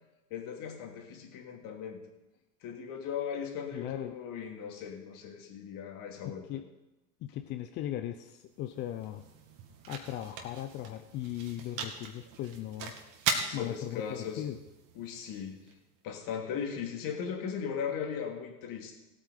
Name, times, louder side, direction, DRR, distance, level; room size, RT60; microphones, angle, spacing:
voice 1, 0.3-2.0 2.6-6.5 13.5-14.4 14.9-15.6 16.0-19.0, left 7 dB, 40° left, 2 dB, 2.8 m, -38 dB
voice 2, 3.7-4.2 6.2-6.7 7.2-9.2 9.9-12.9 13.5-14.6, left 12 dB, 25° left, 8 dB, 0.4 m, -38 dB
sound 1, 8.3-16.4, right 5 dB, 40° right, 2.2 m, -40 dB
16.5 x 8.8 x 5.0 m, 0.97 s
hypercardioid pair, 110°, 48 cm